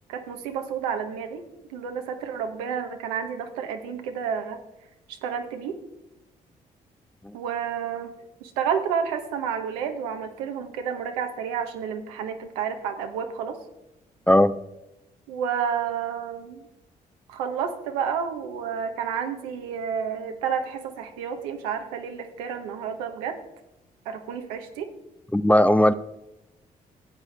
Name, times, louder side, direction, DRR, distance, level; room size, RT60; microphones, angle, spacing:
voice 1, 0.1-4.6 5.1-5.8 7.3-8.1 8.4-13.6 15.3-16.7 17.3-23.4 24.0-24.9, right 7 dB, 90° right, 6 dB, 0.9 m, -30 dB
voice 2, 25.3-25.9, left 1 dB, 10° left, 14 dB, 0.5 m, -18 dB
14.5 x 8.5 x 3.3 m, 0.93 s
hypercardioid pair, 45°, 19 cm